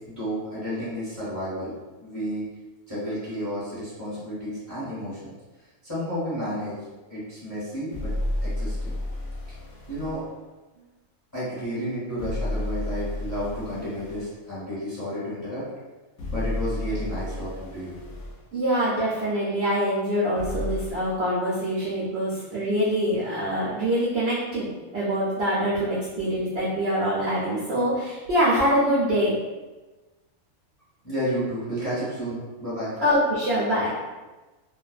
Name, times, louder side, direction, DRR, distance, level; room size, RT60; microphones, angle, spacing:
voice 1, 0.1-1.7 2.0-2.4 2.9-5.3 5.8-6.8 7.1-8.1 8.4-8.9 9.9-10.2 11.3-15.6 16.3-18.0 31.0-32.9, equal, 15° left, -11 dB, 0.8 m, -31 dB
sound 1, 7.9-10.2 12.2-14.3 16.2-18.4 20.4-20.9, left 1 dB, 70° left, 0.9 m, -31 dB
voice 2, 18.5-29.4 33.0-33.9, equal, 75° right, -7 dB, 0.6 m, -24 dB
2.4 x 2.2 x 2.4 m, 1.2 s
omnidirectional pair, 1.6 m